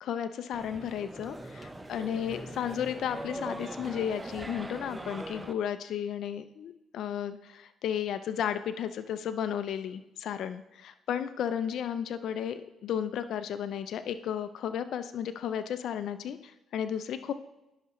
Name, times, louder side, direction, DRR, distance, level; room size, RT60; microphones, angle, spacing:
voice 1, 0.0-17.3, left 9 dB, 75° left, 10 dB, 0.4 m, -33 dB
sound 1, 0.5-5.5, right 1 dB, 15° right, 0.5 m, -41 dB
10.5 x 5.9 x 3.0 m, 0.94 s
cardioid pair, 90°, 0 cm